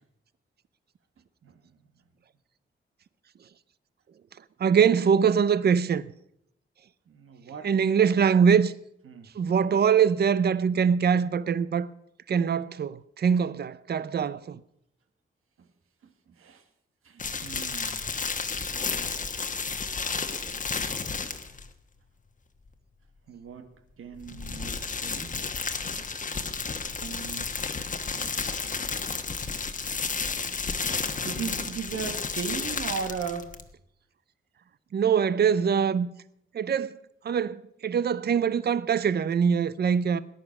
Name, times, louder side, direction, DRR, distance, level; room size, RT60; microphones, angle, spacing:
voice 1, 4.6-6.1 7.6-8.7 9.3-11.9 12.3-14.6 34.9-36.1 36.5-37.0 37.2-40.2, right 7 dB, 50° right, 0.6 m, -23 dB
voice 2, 7.1-7.7 9.1-9.3 16.4-16.6 17.4-18.1 23.3-23.7 24.0-24.8 25.0-25.3 25.9-26.0 27.0-27.5 27.9-28.3 31.0-33.5, right 6 dB, 85° right, 1.8 m, -37 dB
sound 1, 17.2-21.7 24.1-33.7, left 5 dB, 40° left, 1.2 m, -32 dB
19.0 x 11.0 x 6.0 m
wide cardioid pair, 145°, 21 cm